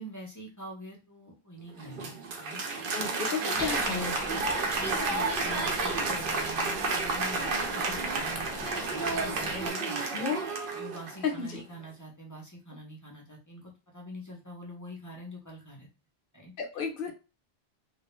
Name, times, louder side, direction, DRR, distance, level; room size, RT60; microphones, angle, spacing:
voice 1, 0.0-2.6 3.2-4.1 4.6-10.2 10.7-15.9 16.3-16.5, equal, 25° left, -2 dB, 0.5 m, -45 dB
Applause, 1.7-11.3, right 3 dB, 65° right, 0.7 m, -31 dB
voice 2, 2.9-4.4 10.1-10.4 11.2-11.6 16.6-17.1, left 6 dB, 60° left, 5 dB, 0.8 m, -33 dB
sound 1, 3.5-9.7, equal, 5° right, 1.0 m, -40 dB
2.3 x 2.1 x 3.0 m, 0.31 s
omnidirectional pair, 1.1 m